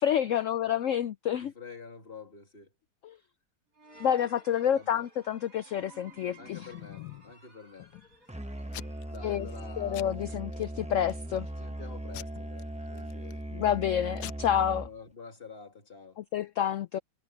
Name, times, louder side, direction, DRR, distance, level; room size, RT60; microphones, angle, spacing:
voice 1, 0.0-1.5 3.0-3.2 4.0-6.7 9.2-9.5 9.8-11.5 13.5-14.9 16.2-17.0, left 9 dB, 90° left, 0.6 m, -29 dB
voice 2, 1.4-2.7 4.7-5.1 6.4-7.9 9.1-10.3 11.5-13.4 14.8-16.2, left 4 dB, 30° left, 2.6 m, -48 dB
sound 1, 3.7-10.2, right 2 dB, 50° right, 6.9 m, -56 dB
Packing tape duct tape / Tearing, 5.9-7.3 7.8-8.3 8.7-9.2 9.5-9.7 9.9-10.6 11.1-11.5 12.1-13.4 13.9-14.0 14.2-14.3, left 15 dB, 75° left, 1.1 m, -45 dB
Musical instrument, 8.3-15.1, right 1 dB, 10° right, 0.5 m, -39 dB
omnidirectional pair, 1.9 m